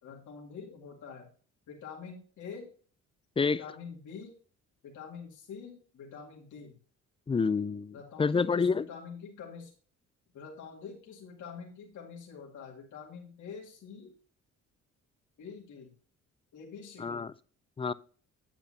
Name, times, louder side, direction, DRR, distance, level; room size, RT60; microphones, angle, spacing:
voice 1, 0.0-1.3 1.7-2.7 3.4-4.3 4.8-6.8 7.9-9.7 10.3-14.1 15.4-16.0 16.5-17.3, left 6 dB, 75° left, 2.2 m, -46 dB
voice 2, 7.3-8.8 17.0-17.3 17.8-17.9, left 5 dB, 20° left, 0.4 m, -28 dB
8.7 x 8.0 x 2.7 m
cardioid pair, 90°, 30 cm